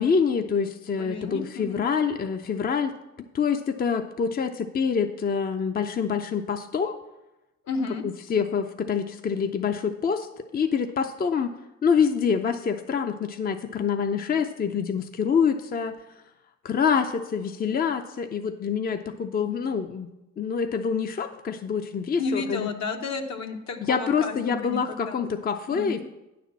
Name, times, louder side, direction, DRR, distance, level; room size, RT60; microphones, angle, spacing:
voice 1, 0.0-2.9 3.3-6.9 8.0-10.3 10.5-11.5 11.8-15.9 16.6-20.1 20.4-22.7 23.8-26.0, left 6 dB, 30° left, 7 dB, 0.5 m, -26 dB
voice 2, 1.0-1.8 7.6-8.0 22.2-25.2 25.7-26.0, left 4 dB, 65° left, 4 dB, 1.1 m, -32 dB
9.3 x 4.2 x 7.2 m, 0.96 s
cardioid pair, 90°, 30 cm